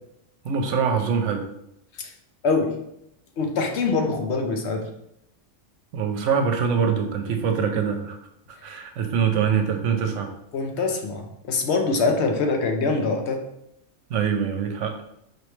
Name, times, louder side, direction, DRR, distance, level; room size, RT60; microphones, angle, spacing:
voice 1, 0.4-1.5 5.9-8.2 8.5-10.3 14.1-15.0, right 6 dB, 75° right, 5 dB, 0.9 m, -24 dB
voice 2, 2.4-2.8 3.4-4.9 10.5-13.4, left 3 dB, 65° left, 4 dB, 0.9 m, -24 dB
4.8 x 3.1 x 3.1 m, 0.78 s
omnidirectional pair, 1.3 m